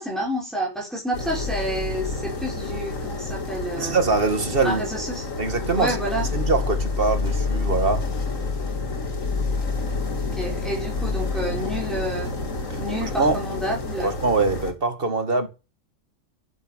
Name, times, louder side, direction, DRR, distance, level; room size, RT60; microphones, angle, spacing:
voice 1, 0.0-4.0 4.6-5.3 5.8-6.3 10.3-12.3 12.8-14.1, equal, ahead, 5.0 m, -29 dB
sound 1, 1.1-14.7, left 3 dB, 85° left, 2.7 m, -28 dB
voice 2, 3.8-4.8 5.4-8.1 12.7-13.4 14.0-15.5, right 3 dB, 45° right, 2.4 m, -23 dB
12.0 x 9.5 x 9.2 m
omnidirectional pair, 1.3 m